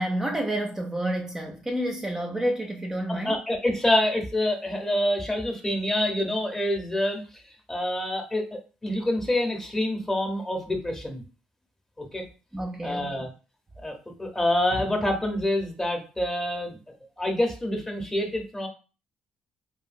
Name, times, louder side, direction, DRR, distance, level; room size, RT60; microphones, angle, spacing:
voice 1, 0.0-3.4 12.5-13.1, right 1 dB, 15° right, 0.4 m, -29 dB
voice 2, 3.1-7.4 7.7-11.2 12.0-12.3 12.8-13.3 13.8-16.8 17.2-18.7, left 1 dB, 15° left, 0.7 m, -27 dB
2.7 x 2.6 x 2.5 m
cardioid pair, 105°, 3 cm